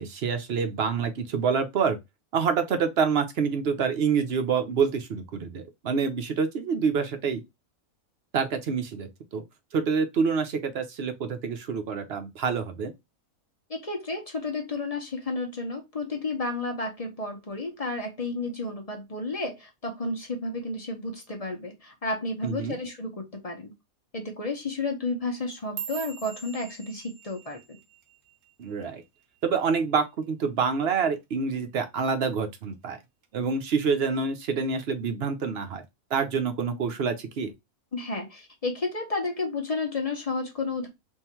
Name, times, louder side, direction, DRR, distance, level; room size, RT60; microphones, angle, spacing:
voice 1, 0.0-2.0 2.3-7.4 8.3-9.4 9.7-12.9 22.4-22.8 28.6-29.0 29.4-33.0 33.3-35.8 36.1-37.5, right 5 dB, 55° right, 0.8 m, -27 dB
voice 2, 13.7-23.7 24.1-27.8 37.9-40.9, left 2 dB, 30° left, 0.8 m, -32 dB
sound 1, 25.3-29.7 30.0-30.4 30.8-31.2 31.6-31.8 32.4-32.8 33.2-34.1 34.4-34.9 35.6-35.7, right 8 dB, 90° right, 1.3 m, -43 dB
3.7 x 2.5 x 4.3 m
omnidirectional pair, 1.5 m